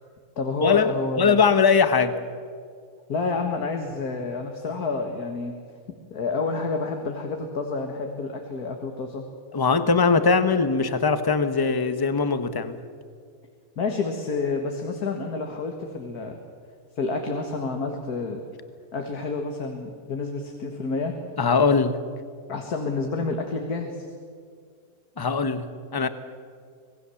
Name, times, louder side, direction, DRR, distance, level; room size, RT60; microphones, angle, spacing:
voice 1, 0.4-1.4 3.1-5.5 6.1-9.2 13.8-16.4 17.0-18.4 18.9-21.1 22.5-24.1, left 3 dB, 75° left, 3 dB, 2.2 m, -29 dB
voice 2, 1.2-2.2 9.5-12.8 21.4-22.0 25.2-26.1, left 5 dB, 20° left, 10 dB, 0.9 m, -21 dB
25.5 x 19.5 x 7.1 m, 2.1 s
omnidirectional pair, 1.6 m